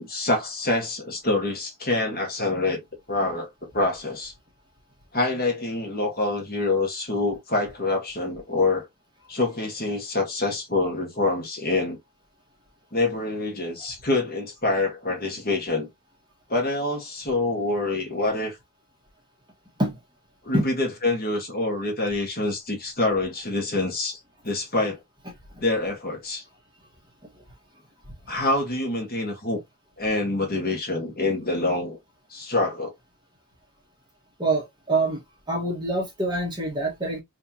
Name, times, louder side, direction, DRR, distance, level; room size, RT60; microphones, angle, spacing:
voice 1, 0.0-4.3 5.1-8.9 9.3-12.0 12.9-15.9 16.5-18.6 20.4-24.2 24.4-25.0 25.6-26.4 28.3-29.6 30.0-32.0 32.3-32.9, left 2 dB, 40° left, 1.5 m, -26 dB
voice 2, 34.4-35.2 35.5-37.2, right 2 dB, 20° right, 1.6 m, -25 dB
3.6 x 3.4 x 2.9 m
head